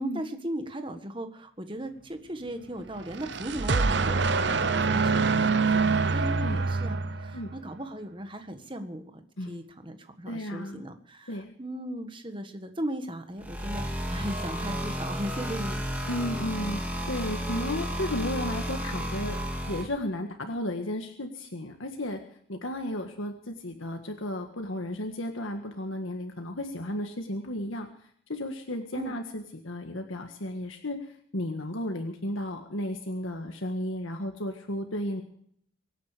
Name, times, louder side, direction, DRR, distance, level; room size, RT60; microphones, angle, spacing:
voice 1, 0.0-15.8 28.9-29.2, right 1 dB, 25° right, 8 dB, 1.5 m, -37 dB
sound 1, 3.0-7.6, right 4 dB, 60° right, 0.8 m, -25 dB
voice 2, 10.3-10.9 11.3-11.5 16.1-16.8 17.1-19.4 19.6-22.2 22.5-27.9 28.3-35.2, left 1 dB, 85° left, 4 dB, 1.7 m, -34 dB
sound 2, 13.4-19.8, equal, 10° right, 2.5 m, -32 dB
24.5 x 9.5 x 5.1 m, 0.65 s
head